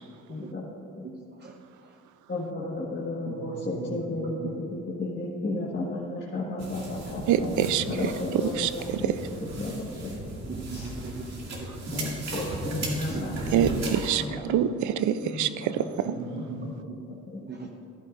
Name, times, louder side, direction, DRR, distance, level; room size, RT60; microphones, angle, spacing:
voice 1, 0.3-0.6 1.0-1.1 2.3-8.7 9.0-9.1 9.6-9.7 10.0-10.1 10.7-10.9 11.9-13.9 14.2-14.5 15.4-15.9 16.3-16.7 17.1-17.4, left 2 dB, 35° left, -5 dB, 1.6 m, -33 dB
voice 2, 3.3-4.5 10.5-12.0 13.1-13.5 16.1-17.0 17.5-17.7, right 3 dB, 35° right, 1 dB, 0.8 m, -39 dB
sound 1, 6.6-14.2, right 2 dB, 60° right, 2.3 m, -36 dB
voice 3, 7.3-9.2 13.5-16.1, right 10 dB, 80° right, 13 dB, 0.5 m, -26 dB
14.0 x 10.5 x 2.5 m, 2.5 s
cardioid pair, 90°, 30 cm